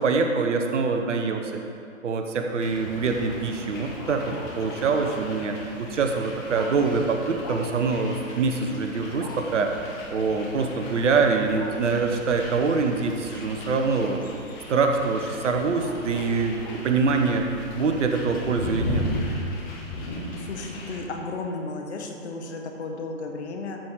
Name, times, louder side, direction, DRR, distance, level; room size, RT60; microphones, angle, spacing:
voice 1, 0.0-1.5 2.0-9.7 10.1-14.2 14.7-17.4 17.7-19.0, right 4 dB, 60° right, 4 dB, 1.1 m, -24 dB
sound 1, 2.6-21.0, left 1 dB, 35° left, 1.8 m, -37 dB
sound 2, 2.7-19.3, left 3 dB, 15° left, 0.4 m, -42 dB
voice 2, 20.4-23.8, left 3 dB, 50° left, 3 dB, 1.5 m, -34 dB
13.5 x 5.1 x 4.8 m, 2.4 s
figure-of-eight pair, 130°, 41 cm